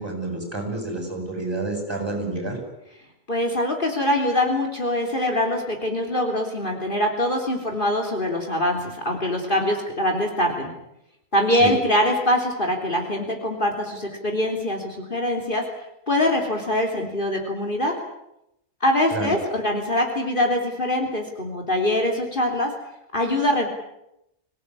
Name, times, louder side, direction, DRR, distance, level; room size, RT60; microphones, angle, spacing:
voice 1, 0.0-2.6 11.6-11.7 19.1-19.3, right 2 dB, 20° right, 3 dB, 8.2 m, -29 dB
voice 2, 3.3-10.7 11.3-15.6 16.1-17.9 18.8-22.7 23.1-23.7, left 1 dB, 45° left, 2 dB, 3.7 m, -23 dB
25.5 x 18.0 x 9.9 m, 0.84 s
omnidirectional pair, 1.2 m